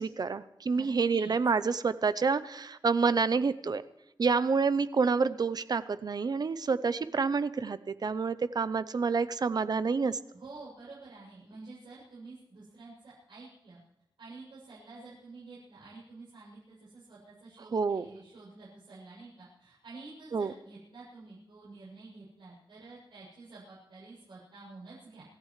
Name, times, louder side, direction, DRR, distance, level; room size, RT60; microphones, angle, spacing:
voice 1, 0.0-3.8 4.2-10.2 17.7-18.0 20.3-20.5, right 5 dB, 55° right, 14 dB, 0.7 m, -28 dB
voice 2, 0.7-1.3 10.3-13.8 14.2-25.2, right 3 dB, 80° right, -8 dB, 7.4 m, -49 dB
26.5 x 15.0 x 3.3 m, 0.85 s
wide cardioid pair, 120°, 8 cm